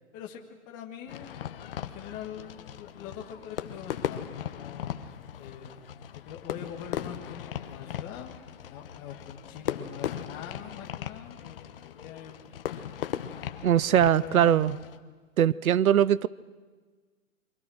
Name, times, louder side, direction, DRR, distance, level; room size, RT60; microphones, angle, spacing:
voice 1, 0.1-1.3 1.8-5.1 5.4-5.8 6.3-8.3 8.6-11.8 12.0-12.4 14.2-14.8 15.5-15.6, left 9 dB, 20° left, 2 dB, 1.7 m, -43 dB
Fireworks, 1.1-15.0, left 10 dB, 40° left, 1.2 m, -38 dB
voice 2, 13.6-14.8 15.4-16.3, right 10 dB, 80° right, 21 dB, 0.8 m, -21 dB
29.0 x 24.0 x 6.3 m, 1.4 s
hypercardioid pair, 160°, 42 cm